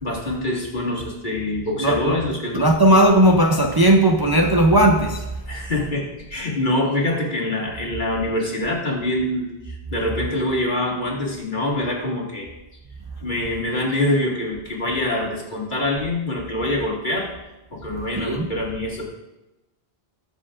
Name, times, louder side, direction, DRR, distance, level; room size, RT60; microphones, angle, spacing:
voice 1, 0.0-2.7 5.5-6.0 6.3-12.5 13.2-17.3 17.7-19.0, left 1 dB, 50° left, -3 dB, 2.3 m, -25 dB
voice 2, 1.8-2.2 2.5-5.3 18.2-18.5, right 1 dB, 25° right, 1 dB, 0.7 m, -16 dB
20.5 x 7.1 x 2.5 m, 0.98 s
omnidirectional pair, 1.0 m